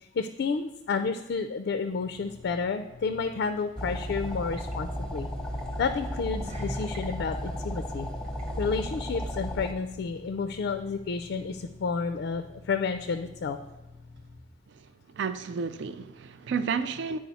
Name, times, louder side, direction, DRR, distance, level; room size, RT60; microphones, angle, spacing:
voice 1, 0.0-5.3 5.8-8.1 8.6-13.6, left 5 dB, 65° left, 8 dB, 0.4 m, -31 dB
sound 1, 1.8-14.4, left 3 dB, 85° right, 1.3 m, -49 dB
sound 2, 3.8-9.7, equal, 5° left, 0.8 m, -34 dB
sound 3, 6.1-10.8 11.0-11.3 11.8-11.9, equal, 35° right, 0.9 m, -48 dB
voice 2, 15.2-17.2, right 5 dB, 65° right, 11 dB, 0.4 m, -31 dB
9.2 x 4.8 x 4.1 m, 1.0 s
head